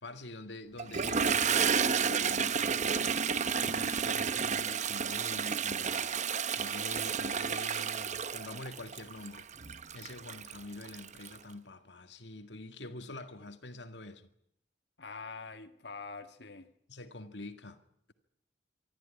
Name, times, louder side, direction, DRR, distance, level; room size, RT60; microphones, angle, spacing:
voice 1, 0.0-3.2 3.6-9.5 9.9-14.3 16.9-17.8, left 2 dB, 90° left, 2.0 m, -46 dB
Toilet flush, 0.8-11.4, right 6 dB, 45° right, 0.8 m, -31 dB
voice 2, 15.0-16.7, left 4 dB, 75° left, 1.8 m, -44 dB
25.0 x 13.5 x 10.0 m
head